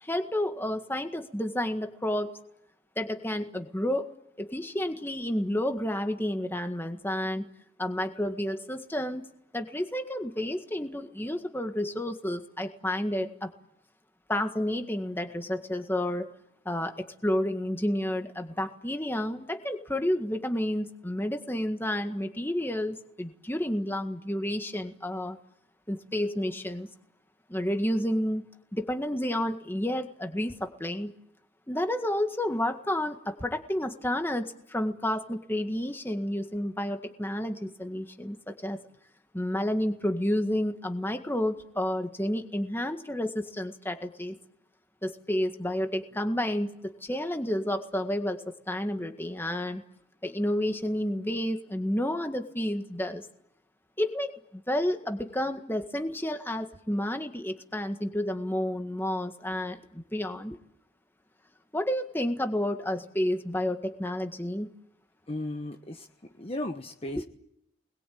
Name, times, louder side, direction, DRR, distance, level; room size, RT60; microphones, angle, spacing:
voice 1, 0.0-2.3 3.0-4.1 4.4-7.5 7.8-9.3 9.5-13.5 14.3-16.3 16.7-25.4 25.9-26.9 27.5-28.4 28.7-31.1 31.7-38.8 39.3-44.4 45.0-49.8 50.2-53.3 54.0-60.6 61.7-64.7 67.1-67.2, left 1 dB, 10° left, 6 dB, 1.8 m, -30 dB
voice 2, 65.3-66.1 66.4-67.2, left 1 dB, 30° left, 4 dB, 1.1 m, -35 dB
29.0 x 21.0 x 8.8 m, 0.78 s
head